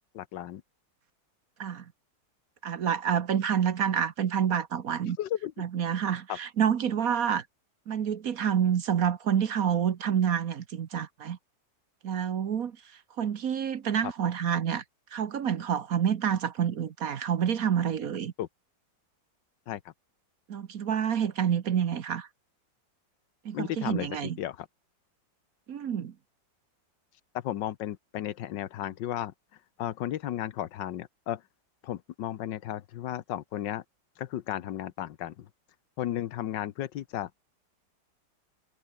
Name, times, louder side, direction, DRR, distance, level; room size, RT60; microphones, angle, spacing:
voice 1, 0.1-0.6 5.2-5.5 6.3-6.4 14.0-14.1 18.4-18.5 19.7-19.9 23.5-24.7 27.3-29.3 29.8-31.4 31.8-33.8 34.2-35.5 36.0-37.3, left 12 dB, 80° left, 1.5 m, -34 dB
voice 2, 2.6-5.2 5.6-7.4 7.9-11.4 12.0-12.8 13.2-14.8 15.1-18.3 20.5-22.3 23.4-24.4 25.7-26.1, right 8 dB, 55° right, 1.4 m, -28 dB
omnidirectional pair, 2.0 m